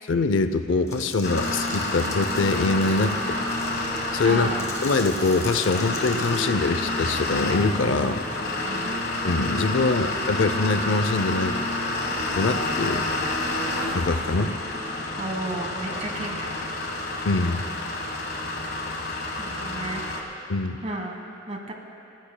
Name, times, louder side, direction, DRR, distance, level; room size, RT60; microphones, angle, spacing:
voice 1, 0.1-3.4 4.1-4.5 4.8-8.2 9.2-11.6 12.4-13.0 13.9-14.5 17.2-17.6 20.5-20.8, left 3 dB, 70° left, 10 dB, 0.6 m, -23 dB
sound 1, 0.9-6.4, left 2 dB, 15° left, 1.4 m, -40 dB
sound 2, 1.2-20.2, left 2 dB, 55° left, 1.4 m, -29 dB
voice 2, 4.2-4.7 8.6-8.9 15.2-16.6 19.4-20.0 20.8-21.7, right 1 dB, 35° right, 2 dB, 1.4 m, -33 dB
28.0 x 15.0 x 2.2 m, 2.7 s
head